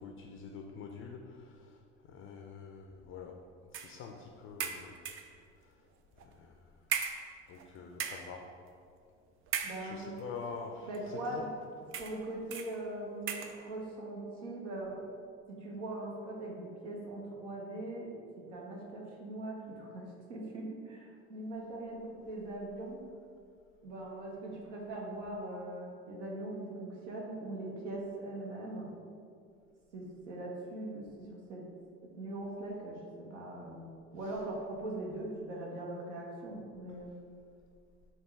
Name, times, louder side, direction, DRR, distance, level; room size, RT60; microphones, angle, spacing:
voice 1, 0.0-3.3 3.7-5.0 5.6-5.7 6.2-6.7 7.5-8.4 9.8-11.5, left 5 dB, 40° left, 2 dB, 0.4 m, -46 dB
sound 1, 3.7-4.0 4.6-5.4 6.2-6.3 6.9-7.7 7.9-8.4 9.5-10.2 10.9-11.1 11.9-12.2 12.5-12.7 13.3-13.6, right 7 dB, 40° right, 0.4 m, -37 dB
voice 2, 9.6-10.1 10.8-11.5 12.0-15.0 15.5-23.1 23.8-28.9 29.9-31.6 32.2-33.0 33.3-37.2, right 1 dB, 85° right, -2 dB, 0.8 m, -41 dB
3.5 x 2.4 x 4.2 m, 2.3 s
hypercardioid pair, 70°, 35 cm